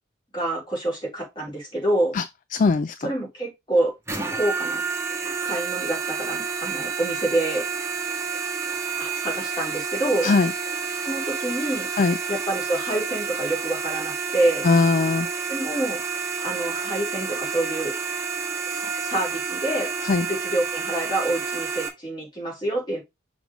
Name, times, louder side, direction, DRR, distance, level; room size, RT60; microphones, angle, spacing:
voice 1, 0.3-2.2 3.0-3.9 4.3-4.8 5.4-7.6 9.0-10.3 11.0-11.9 12.3-14.7 15.5-16.0 16.4-17.9 18.7-19.9 20.3-23.0, right 1 dB, 25° left, 3.7 m, -27 dB
voice 2, 2.5-3.1 10.2-10.5 11.9-12.2 14.6-15.3 20.0-20.3, left 4 dB, 40° left, 0.3 m, -20 dB
sound 1, 4.1-21.9, right 5 dB, 15° right, 1.3 m, -29 dB
6.3 x 3.4 x 5.1 m
head